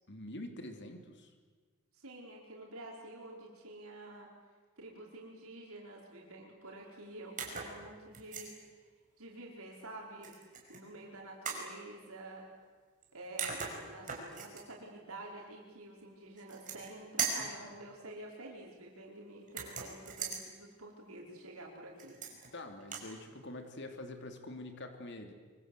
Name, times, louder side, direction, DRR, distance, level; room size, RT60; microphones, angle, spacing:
voice 1, 0.1-1.3 17.3-17.7 22.5-25.3, left 1 dB, 55° left, 6 dB, 3.0 m, -46 dB
voice 2, 1.9-4.3 4.8-8.5 8.8-8.9 9.2-10.3 10.7-12.5 13.1-22.2, right 2 dB, 75° right, -2 dB, 5.1 m, -49 dB
sound 1, 7.4-7.7 8.1-8.5 10.2-10.8 11.4-11.7 13.0-13.1 13.4-14.6 16.4-16.9 17.2-17.5 19.5-20.4 22.0-22.5 22.8-23.1, right 6 dB, 35° right, 5.2 m, -38 dB
24.5 x 24.5 x 8.2 m, 1.5 s
head